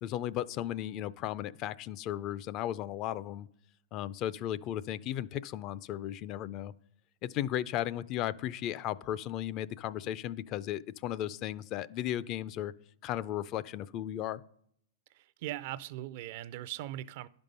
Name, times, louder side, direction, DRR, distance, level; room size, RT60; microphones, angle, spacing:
voice 1, 0.0-3.5 3.9-6.7 7.2-12.7 13.0-14.4, left 12 dB, 40° left, 0.3 m, -35 dB
voice 2, 15.1-17.3, right 14 dB, 55° right, 0.4 m, -40 dB
11.0 x 5.3 x 5.4 m
hypercardioid pair, 130°, 0 cm